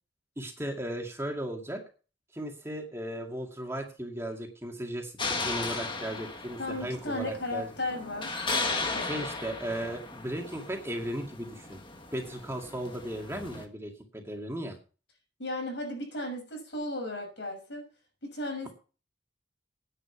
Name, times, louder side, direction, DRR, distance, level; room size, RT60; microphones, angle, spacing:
voice 1, 0.4-1.8 2.3-7.7 9.0-11.8 12.1-14.8, right 1 dB, 15° right, 1 dB, 2.2 m, -36 dB
sound 1, 5.2-13.7, left 3 dB, 25° left, 1.7 m, -36 dB
voice 2, 6.6-9.3 15.4-17.8 18.2-18.7, left 1 dB, 70° left, 3 dB, 6.4 m, -35 dB
10.0 x 7.2 x 8.4 m, 0.36 s
head